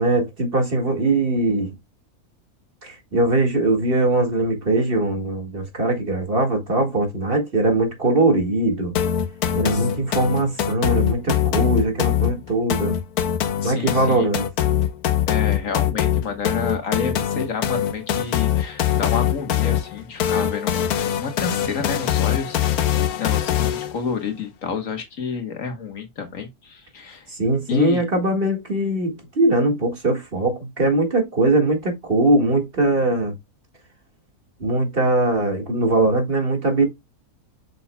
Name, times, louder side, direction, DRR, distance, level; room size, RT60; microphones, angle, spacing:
voice 1, 0.0-1.7 2.8-8.9 9.5-13.0 13.6-14.4 27.3-33.3 34.6-36.8, right 2 dB, 40° right, 2.0 m, -21 dB
sound 1, 9.0-24.0, left 10 dB, 85° left, 1.3 m, -22 dB
voice 2, 9.7-10.1 13.6-14.3 15.3-20.9 21.2-27.3 27.7-28.0, left 6 dB, 60° left, 1.7 m, -29 dB
7.0 x 6.3 x 2.2 m
omnidirectional pair, 1.5 m